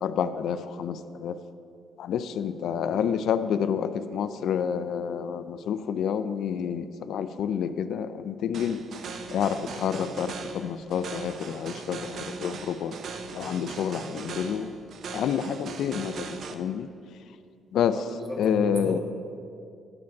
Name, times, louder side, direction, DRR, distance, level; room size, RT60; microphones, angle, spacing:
voice 1, 0.0-1.4 2.0-8.8 9.3-12.9 13.3-14.8 15.1-16.9 17.7-18.1 18.4-19.0, left 8 dB, 75° left, 12 dB, 0.4 m, -28 dB
sound 1, 8.5-16.5, right 5 dB, 60° right, 0.6 m, -39 dB
voice 2, 17.9-19.0, equal, 30° right, 0 dB, 1.9 m, -36 dB
10.5 x 5.0 x 7.0 m, 2.4 s
cardioid pair, 90°, 0 cm